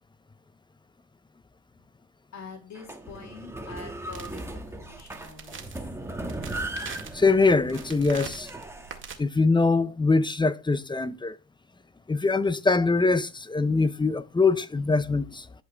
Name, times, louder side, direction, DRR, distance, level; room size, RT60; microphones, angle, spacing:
voice 1, 2.3-5.6, left 4 dB, 65° left, 2.6 m, -45 dB
sound 1, 2.8-9.0, right 1 dB, 10° right, 1.3 m, -37 dB
sound 2, 4.1-9.2, right 6 dB, 40° right, 1.8 m, -44 dB
voice 2, 7.1-8.5 9.2-11.4 12.1-15.5, left 3 dB, 15° left, 0.6 m, -23 dB
11.5 x 5.0 x 3.4 m
cardioid pair, 90°, 30 cm